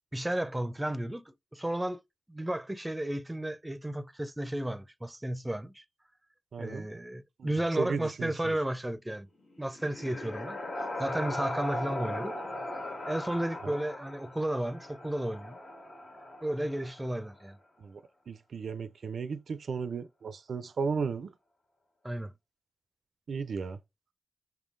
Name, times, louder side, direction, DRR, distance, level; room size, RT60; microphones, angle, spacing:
voice 1, 0.1-1.2 1.5-2.0 2.3-5.8 6.6-9.3 9.6-12.4 13.1-15.6 16.4-17.6 22.0-22.3, right 1 dB, 15° right, 0.5 m, -33 dB
voice 2, 6.5-6.9 7.4-8.5 13.6-13.8 17.8-18.0 18.3-21.3 23.3-23.8, right 5 dB, 75° right, 0.4 m, -35 dB
sound 1, 9.5-17.3, left 1 dB, 70° left, 1.6 m, -39 dB
5.6 x 3.6 x 2.5 m
cardioid pair, 45°, 0 cm